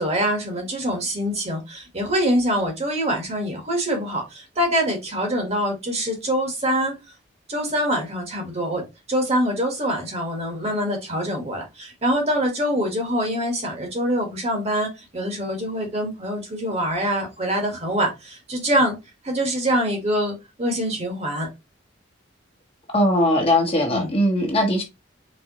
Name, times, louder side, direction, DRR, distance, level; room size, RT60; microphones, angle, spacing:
voice 1, 0.0-7.0 7.5-19.0 19.2-21.5 23.9-24.1, equal, 35° right, 1.3 m, -24 dB
voice 2, 22.9-24.8, left 1 dB, 30° left, 1.1 m, -20 dB
4.3 x 3.4 x 2.9 m
head